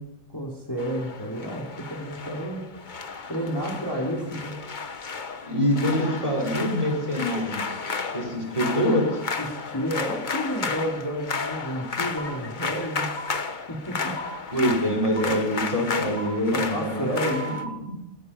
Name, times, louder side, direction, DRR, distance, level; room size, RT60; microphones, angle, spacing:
voice 1, 0.3-2.7 3.3-4.5 9.4-13.1 13.7-14.1 16.5-17.6, equal, 15° left, -2 dB, 2.7 m, -31 dB
sound 1, 0.8-17.6, left 4 dB, 35° left, 1.1 m, -33 dB
voice 2, 5.4-7.6 8.1-9.2 14.5-17.6, equal, 25° right, 0 dB, 4.9 m, -25 dB
sound 2, 12.2-12.3 13.2-13.3 14.2-14.3 15.2-15.3 16.1-16.3 17.1-17.7, right 1 dB, 80° left, 4.1 m, -36 dB
24.5 x 9.2 x 5.4 m, 0.84 s
omnidirectional pair, 1.5 m